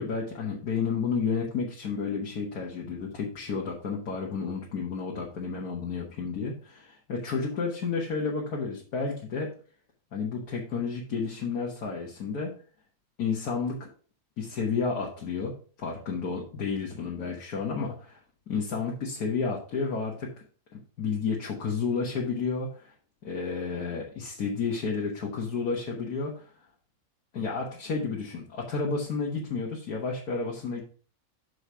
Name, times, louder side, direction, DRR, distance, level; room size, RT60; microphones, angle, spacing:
voice 1, 0.0-9.5 10.1-12.5 13.2-13.9 14.4-18.2 18.5-20.3 20.7-22.9 23.2-26.4 27.3-30.8, left 5 dB, 85° left, -2 dB, 1.8 m, -31 dB
6.5 x 4.8 x 5.5 m, 0.42 s
omnidirectional pair, 1.6 m